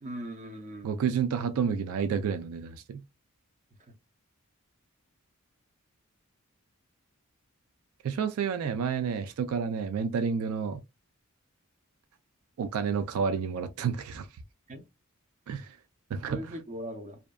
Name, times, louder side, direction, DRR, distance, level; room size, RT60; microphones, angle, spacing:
voice 1, 0.0-1.1 14.7-14.8 16.3-17.2, equal, 35° right, 0.6 m, -40 dB
voice 2, 0.8-3.0 8.0-10.8 12.6-14.3 15.5-15.8 16.1-16.6, right 6 dB, 80° right, 0.3 m, -30 dB
2.6 x 2.1 x 2.2 m
head